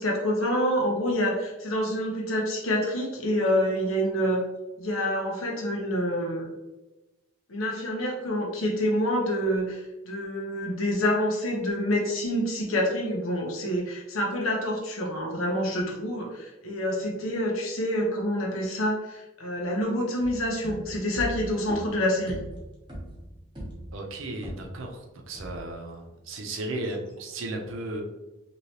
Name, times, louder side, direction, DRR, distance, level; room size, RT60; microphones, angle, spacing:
voice 1, 0.0-4.4 4.8-6.5 7.5-22.4, equal, 85° left, -1 dB, 0.9 m, -27 dB
sound 1, 20.2-24.9 25.3-25.9, equal, 25° right, 0.8 m, -40 dB
voice 2, 23.9-28.0, right 2 dB, 75° right, 2 dB, 0.6 m, -35 dB
3.1 x 2.9 x 2.8 m, 1.0 s
head